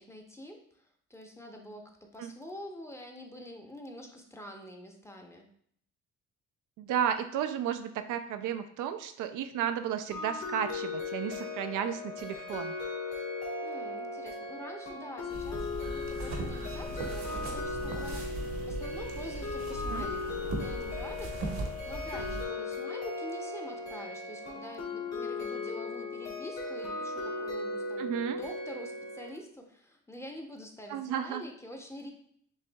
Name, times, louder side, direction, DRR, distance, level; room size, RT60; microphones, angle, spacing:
voice 1, 0.0-5.5 13.6-32.1, equal, 10° left, 2 dB, 0.7 m, -46 dB
voice 2, 6.8-12.7 19.9-20.0 28.0-28.4 30.9-31.4, right 9 dB, 85° right, 9 dB, 0.5 m, -33 dB
sound 1, 10.1-29.3, left 3 dB, 60° left, 1.4 m, -37 dB
sound 2, 15.3-22.5, right 2 dB, 65° right, 1.0 m, -38 dB
6.5 x 2.6 x 2.2 m, 0.64 s
cardioid pair, 90°, 30 cm